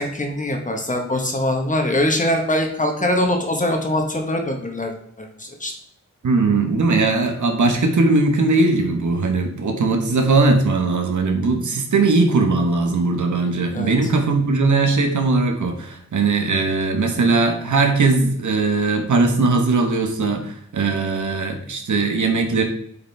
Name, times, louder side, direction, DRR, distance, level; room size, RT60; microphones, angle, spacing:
voice 1, 0.0-5.7 13.7-14.1, left 1 dB, 25° left, 3 dB, 1.3 m, -23 dB
voice 2, 6.2-22.6, right 3 dB, 75° right, 4 dB, 1.4 m, -19 dB
8.2 x 5.3 x 3.5 m, 0.65 s
wide cardioid pair, 160°, 30 cm